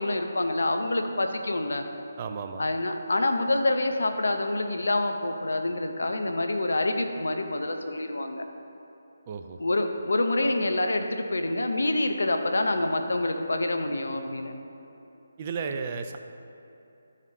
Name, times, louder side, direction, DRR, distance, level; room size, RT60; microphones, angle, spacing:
voice 1, 0.0-1.8 2.6-8.4 9.6-14.5, left 2 dB, 75° left, 5 dB, 0.7 m, -27 dB
voice 2, 2.2-2.7 9.3-9.6 15.4-16.2, right 5 dB, 30° right, 6 dB, 0.4 m, -33 dB
12.0 x 5.0 x 2.8 m, 3.0 s
figure-of-eight pair, 155°, 0 cm